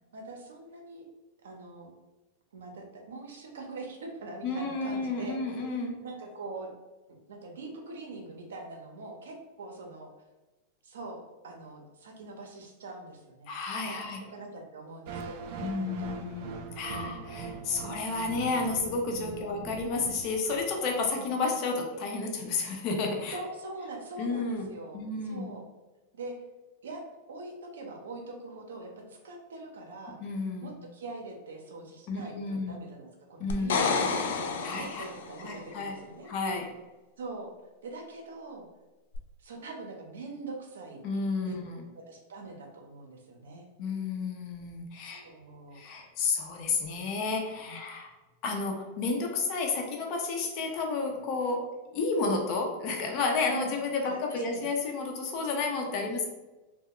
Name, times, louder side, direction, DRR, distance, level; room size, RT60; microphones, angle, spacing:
voice 1, 0.1-1.0 1.4-1.9 2.5-5.4 6.0-6.7 7.1-10.1 10.8-13.5 13.8-14.0 14.3-15.5 15.7-16.1 16.8-17.4 19.3-19.5 21.2-21.5 23.3-25.7 26.1-26.3 26.8-27.0 27.3-30.2 30.6-36.3 37.2-37.5 37.8-38.7 39.4-41.0 41.5-41.6 41.9-43.7 45.0-45.8 47.7-47.8 53.5-53.6 54.0-54.7 56.0-56.2, right 3 dB, 90° right, 2 dB, 0.6 m, -43 dB
voice 2, 4.4-6.0 13.5-14.2 15.6-23.4 24.2-24.7 24.9-25.5 30.2-30.7 32.1-32.8 33.4-33.7 34.6-35.0 35.4-36.0 36.2-36.7 41.0-41.8 43.8-45.2 45.7-48.1 48.4-56.2, left 3 dB, 50° left, 1 dB, 0.6 m, -31 dB
sound 1, 15.1-21.1, right 5 dB, 55° right, 0.3 m, -41 dB
sound 2, 33.5-35.4 39.1-39.2, left 5 dB, 80° left, 0.3 m, -29 dB
2.2 x 2.2 x 3.6 m, 1.1 s
hypercardioid pair, 120°, 0 cm